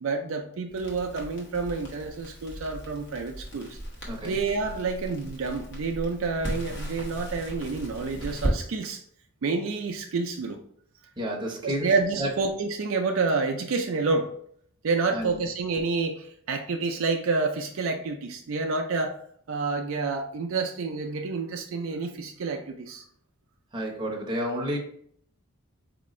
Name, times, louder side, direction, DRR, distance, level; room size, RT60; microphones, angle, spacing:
voice 1, 0.0-3.8 4.2-9.0 9.4-10.6 11.6-14.3 14.8-19.2 19.5-23.0, right 4 dB, 65° right, 4 dB, 0.4 m, -29 dB
Crackle, 0.7-8.6, right 1 dB, 55° left, 1.0 m, -36 dB
voice 2, 4.1-4.4 11.2-11.9 12.2-12.3 15.1-15.4 23.7-24.8, equal, 20° right, -1 dB, 0.7 m, -30 dB
4.4 x 2.5 x 3.1 m, 0.63 s
head